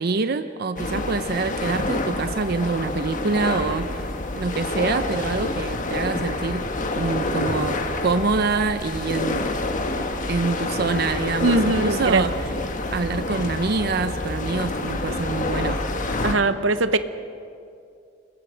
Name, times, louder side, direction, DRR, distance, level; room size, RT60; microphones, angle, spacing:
voice 1, 0.0-4.1 4.4-6.6 6.9-9.5 10.3-12.5 12.9-15.8, right 4 dB, 55° right, 10 dB, 0.7 m, -25 dB
sound 1, 0.8-16.4, left 2 dB, 45° left, 1.5 m, -27 dB
voice 2, 11.4-12.3 15.1-15.2 16.2-17.0, right 2 dB, 85° right, 11 dB, 1.0 m, -21 dB
28.5 x 21.0 x 5.1 m, 2.5 s
head